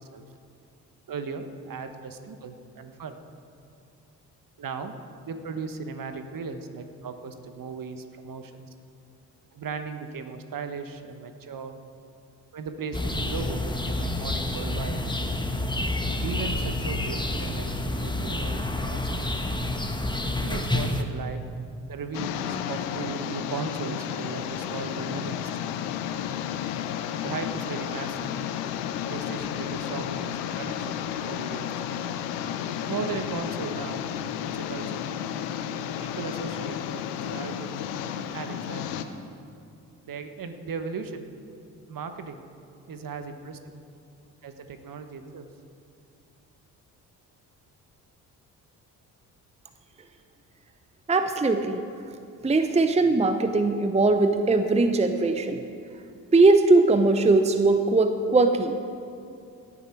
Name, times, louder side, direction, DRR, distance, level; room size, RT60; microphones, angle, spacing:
voice 1, 1.1-3.2 4.6-4.9 5.2-8.7 9.5-11.7 12.5-15.0 16.2-19.3 20.4-21.4 21.9-25.5 27.2-28.3 29.1-31.7 32.7-34.0 34.4-35.0 36.0-37.7 38.3-39.1 40.1-41.3 41.9-42.4 42.9-43.7 44.4-45.5, right 5 dB, 45° right, 8 dB, 1.3 m, -37 dB
sound 1, 12.9-21.0, left 1 dB, 10° left, 1.4 m, -28 dB
sound 2, 22.1-39.0, left 9 dB, 80° left, 0.8 m, -32 dB
voice 2, 51.1-51.8 52.4-55.6 56.3-58.8, right 3 dB, 15° right, 8 dB, 0.8 m, -20 dB
17.0 x 9.8 x 4.6 m, 2.5 s
hypercardioid pair, 40°, 47 cm